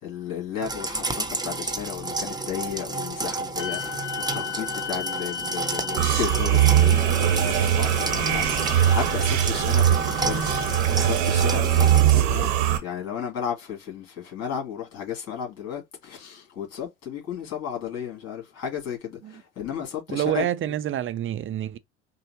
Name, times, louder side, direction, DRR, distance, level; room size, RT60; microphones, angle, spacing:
voice 1, 0.0-4.1 4.3-12.6 12.8-20.5, left 8 dB, 45° left, 2.4 m, -34 dB
sound 1, 0.6-12.1, right 3 dB, 10° right, 0.8 m, -31 dB
sound 2, 3.6-11.1, left 9 dB, 75° left, 0.9 m, -36 dB
sound 3, 6.0-12.8, right 11 dB, 80° right, 0.9 m, -21 dB
voice 2, 20.1-21.8, right 11 dB, 35° right, 0.5 m, -27 dB
5.4 x 2.0 x 2.9 m
hypercardioid pair, 65°, 34 cm